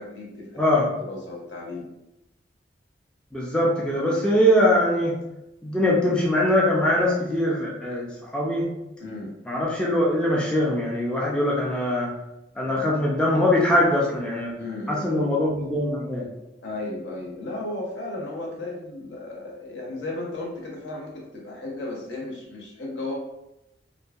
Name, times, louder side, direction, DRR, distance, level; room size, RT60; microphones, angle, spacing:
voice 1, 0.0-1.9 5.7-5.9 9.0-9.3 12.6-12.9 14.6-15.1 16.6-23.1, left 2 dB, 70° left, -3 dB, 0.8 m, -35 dB
voice 2, 3.3-5.1 5.6-8.7 9.5-12.1 12.6-14.5 14.9-16.3, left 1 dB, 5° left, -4 dB, 0.4 m, -22 dB
2.7 x 2.6 x 2.3 m, 0.89 s
head